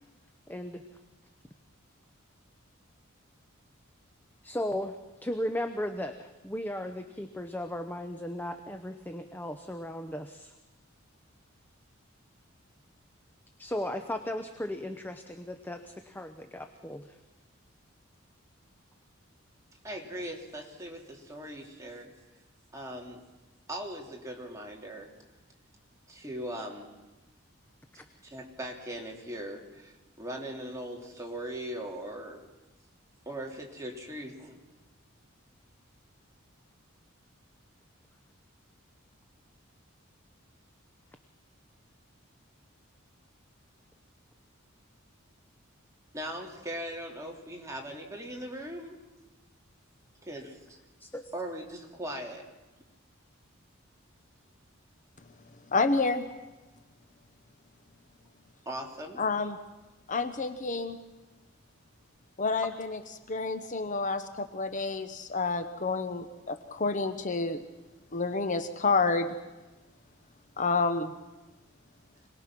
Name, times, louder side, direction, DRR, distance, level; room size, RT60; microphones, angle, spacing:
voice 1, 0.5-0.9 4.4-10.5 13.6-17.2 51.0-51.2, left 1 dB, 10° left, 7 dB, 0.8 m, -36 dB
voice 2, 19.8-22.1 22.7-23.2 23.7-25.1 26.1-26.9 28.3-32.4 33.3-34.6 46.1-49.0 50.2-50.8 51.3-52.5 58.6-59.2, right 1 dB, 15° right, 0 dB, 2.8 m, -39 dB
voice 3, 55.7-56.3 59.2-59.6 60.1-61.0 62.4-63.0 63.3-67.6 68.1-69.3 70.6-71.1, left 3 dB, 35° left, 8 dB, 1.0 m, -29 dB
26.0 x 19.5 x 6.0 m, 1.1 s
head